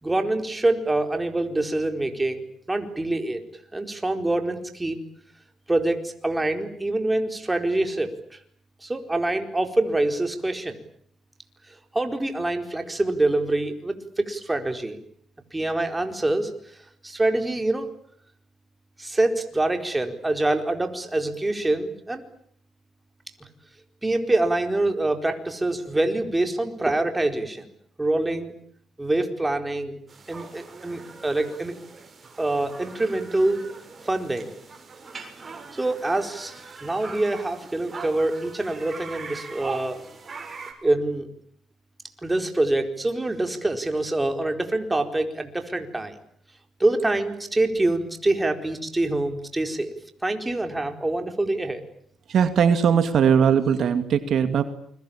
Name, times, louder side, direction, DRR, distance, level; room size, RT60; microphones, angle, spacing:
voice 1, 0.0-3.4 3.7-5.0 5.7-8.1 8.8-10.8 11.9-15.0 15.5-16.5 17.0-17.9 19.0-22.2 24.0-27.7 28.0-28.5 29.0-30.0 30.3-31.7 32.4-33.6 34.0-34.5 35.7-40.0 40.8-41.3 42.2-46.1 46.8-50.0 50.2-51.8, right 2 dB, 15° right, 5 dB, 4.4 m, -25 dB
sound 1, 30.1-40.7, right 4 dB, 30° right, 7.4 m, -41 dB
voice 2, 52.3-54.6, right 7 dB, 65° right, 9 dB, 2.4 m, -19 dB
29.0 x 22.5 x 8.8 m, 0.64 s
cardioid pair, 90°, 0 cm